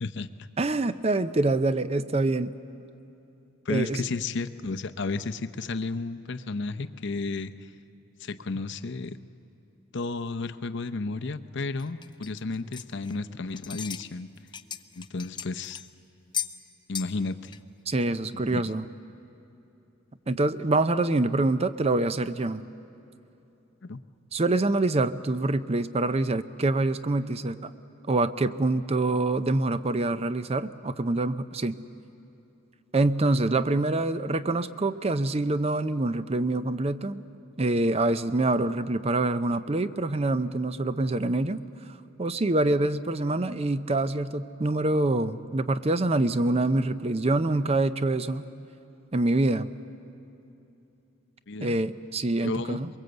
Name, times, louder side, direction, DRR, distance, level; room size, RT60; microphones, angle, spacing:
voice 1, 0.0-0.5 3.7-7.5 8.2-9.2 9.9-14.3 14.9-15.8 16.9-17.6 18.5-18.6 23.8-24.0 51.5-51.8 52.4-52.8, left 3 dB, 60° left, 10 dB, 0.7 m, -32 dB
voice 2, 0.6-2.5 3.7-4.1 17.9-18.9 20.3-22.6 24.3-27.7 28.1-31.8 32.9-37.2 37.6-41.6 42.2-48.5 49.1-49.7 51.6-52.9, right 2 dB, 30° right, 13 dB, 0.5 m, -25 dB
sound 1, 11.8-13.3 13.6-14.1 14.4-15.9 16.3-16.6 16.9-17.2 17.5-17.6 18.1-18.2, left 8 dB, 20° left, 0.5 m, -36 dB
23.0 x 22.5 x 8.0 m, 3.0 s
head